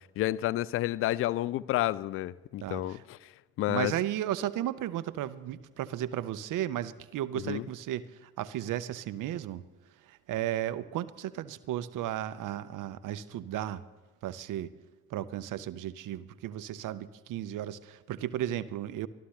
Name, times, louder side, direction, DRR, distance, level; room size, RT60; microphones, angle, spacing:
voice 1, 0.2-3.3 3.6-3.9 7.4-7.6, left 15 dB, 30° left, 0.4 m, -30 dB
voice 2, 2.6-3.0 3.7-9.6 10.0-13.8 14.2-14.7 15.1-19.1, right 12 dB, 45° right, 0.8 m, -34 dB
24.0 x 13.0 x 3.3 m
figure-of-eight pair, 50°, 46 cm